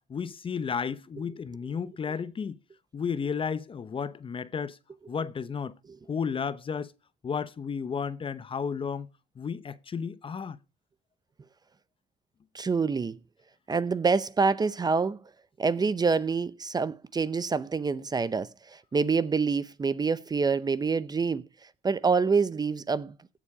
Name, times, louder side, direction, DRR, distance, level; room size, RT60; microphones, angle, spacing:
voice 1, 0.1-2.6 2.9-4.8 5.1-5.7 6.1-6.9 7.2-9.1 9.4-10.6, left 6 dB, 30° left, 0.8 m, -33 dB
voice 2, 12.5-13.2 13.7-15.2 15.6-21.4 21.8-23.1, right 4 dB, 25° right, 0.7 m, -26 dB
16.0 x 7.3 x 4.8 m
cardioid pair, 110°, 17 cm